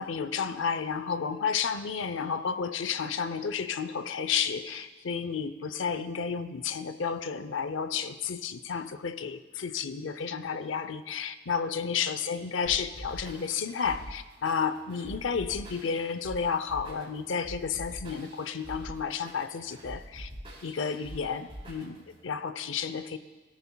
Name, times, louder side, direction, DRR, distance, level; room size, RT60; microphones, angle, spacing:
voice 1, 0.0-20.3 20.6-23.2, left 6 dB, 75° left, 12 dB, 0.6 m, -32 dB
sound 1, 12.6-22.2, equal, 30° right, 4.3 m, -45 dB
21.0 x 13.5 x 2.3 m, 1.2 s
head